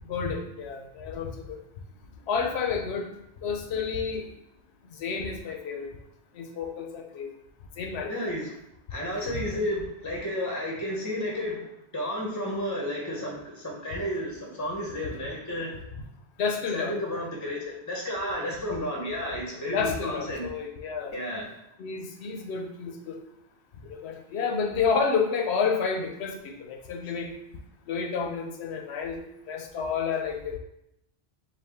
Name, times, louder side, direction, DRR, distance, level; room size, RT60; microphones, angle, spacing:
voice 1, 0.1-1.6 2.3-3.1 3.4-4.3 5.0-5.9 6.3-7.3 7.8-8.1 16.4-16.9 19.7-21.1 21.8-23.2 23.9-27.3 27.9-30.6, left 5 dB, 75° left, 3 dB, 0.9 m, -30 dB
voice 2, 8.1-8.6 8.9-11.6 11.9-15.8 16.7-20.5 21.1-21.5 27.0-27.1, equal, 20° left, -2 dB, 0.7 m, -32 dB
5.1 x 2.3 x 3.4 m, 0.81 s
omnidirectional pair, 1.1 m